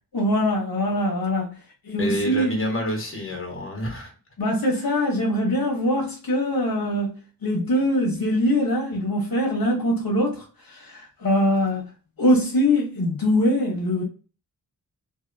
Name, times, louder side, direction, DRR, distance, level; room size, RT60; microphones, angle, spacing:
voice 1, 0.1-1.6 1.8-2.6 4.4-11.9 12.2-14.0, left 1 dB, 65° left, 0.9 m, -23 dB
voice 2, 2.0-4.1, left 1 dB, 35° left, 1.1 m, -27 dB
2.7 x 2.6 x 2.5 m
wide cardioid pair, 90°, 37 cm